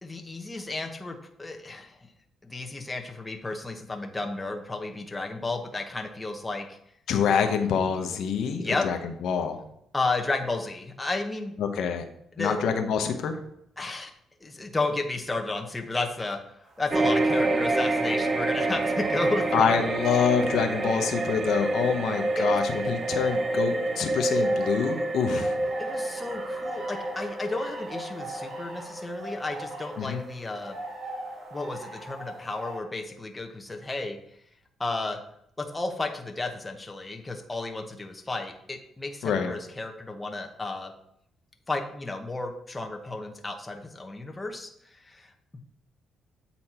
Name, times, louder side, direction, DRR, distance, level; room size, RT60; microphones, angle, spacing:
voice 1, 0.0-2.1 2.4-6.8 8.6-8.9 9.9-11.6 12.4-12.6 13.8-14.1 14.4-19.8 22.4-22.6 25.8-30.8 31.5-34.2 34.8-35.2 35.6-40.9 41.7-45.3, left 2 dB, 15° left, 3 dB, 1.0 m, -32 dB
voice 2, 7.1-9.6 11.6-12.0 12.4-13.4 19.5-25.6 30.0-30.2 39.2-39.5, left 7 dB, 70° left, 5 dB, 0.8 m, -26 dB
sound 1, 16.6-32.8, right 2 dB, 60° right, 2.1 m, -42 dB
sound 2, 16.9-31.5 31.9-32.0, right 2 dB, 35° right, 0.8 m, -28 dB
7.9 x 4.3 x 4.3 m, 0.74 s
cardioid pair, 90°, 0 cm